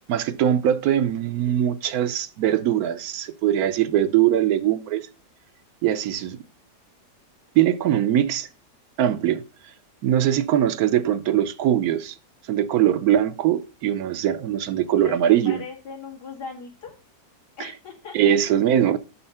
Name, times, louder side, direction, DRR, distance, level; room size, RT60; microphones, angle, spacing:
voice 1, 0.1-5.1 5.8-6.4 7.5-8.5 9.0-9.7 10.0-12.2 12.4-15.6 17.6-17.7 18.1-19.0, right 11 dB, 70° right, 1.0 m, -21 dB
voice 2, 14.9-16.9 17.6-18.3, left 5 dB, 80° left, 2.8 m, -38 dB
6.5 x 5.6 x 5.4 m
omnidirectional pair, 1.7 m